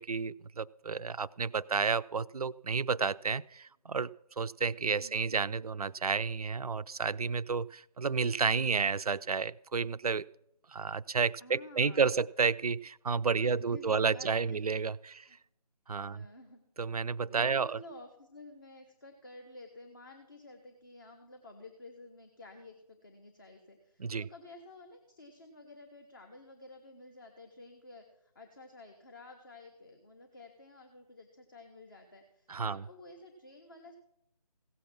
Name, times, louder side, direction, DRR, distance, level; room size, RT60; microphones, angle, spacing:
voice 1, 0.0-4.1 4.4-10.3 10.7-15.2 15.9-16.3 16.8-17.7 24.0-24.3 32.5-32.8, right 5 dB, 65° right, 16 dB, 0.4 m, -31 dB
voice 2, 4.8-5.2 8.3-8.4 11.4-12.1 13.3-14.6 15.1-15.4 16.0-16.6 17.3-34.0, left 2 dB, 30° left, 4 dB, 1.3 m, -52 dB
16.0 x 8.2 x 6.0 m, 0.77 s
figure-of-eight pair, 160°, 20 cm